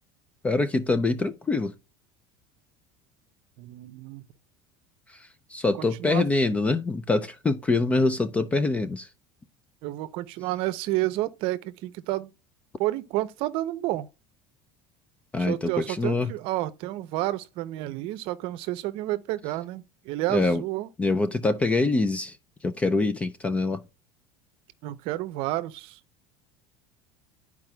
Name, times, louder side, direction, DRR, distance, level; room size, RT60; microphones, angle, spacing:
voice 1, 0.4-1.7 5.5-9.1 15.3-16.3 20.3-20.6 21.0-22.3 22.6-23.8, left 3 dB, 10° left, 0.3 m, -24 dB
voice 2, 3.6-4.2 5.8-6.3 9.8-12.3 12.8-14.1 15.4-20.9 24.8-26.0, right 16 dB, 50° right, 0.6 m, -30 dB
12.5 x 4.7 x 2.2 m
cardioid pair, 170°, 12 cm